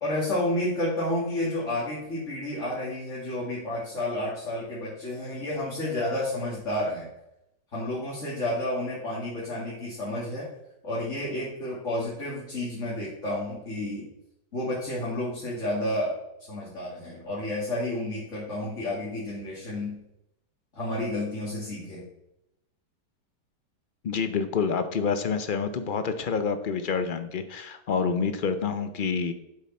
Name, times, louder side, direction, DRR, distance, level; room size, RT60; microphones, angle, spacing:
voice 1, 0.0-7.1 7.7-10.5 10.8-14.1 14.5-16.1 16.4-19.9 20.7-22.0, left 1 dB, 45° left, -7 dB, 2.8 m, -30 dB
voice 2, 24.0-29.3, left 5 dB, 70° left, 9 dB, 0.4 m, -28 dB
9.8 x 7.8 x 4.3 m, 0.85 s
omnidirectional pair, 1.8 m